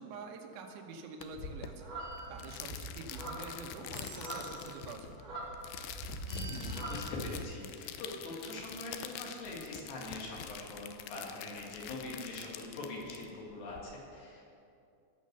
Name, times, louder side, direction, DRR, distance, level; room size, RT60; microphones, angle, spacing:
voice 1, 0.0-1.9 2.3-5.5, right 4 dB, 80° right, 3 dB, 3.4 m, -47 dB
sound 1, 1.2-13.8, left 9 dB, 80° left, 2.3 m, -46 dB
sound 2, 1.3-7.5, right 2 dB, 10° right, 2.1 m, -43 dB
sound 3, 2.0-3.5 3.9-4.8 6.3-7.4, right 5 dB, 65° right, 4.7 m, -52 dB
voice 2, 6.3-14.6, left 2 dB, 65° left, -2 dB, 4.1 m, -43 dB
17.5 x 6.6 x 6.7 m, 2.6 s
omnidirectional pair, 5.3 m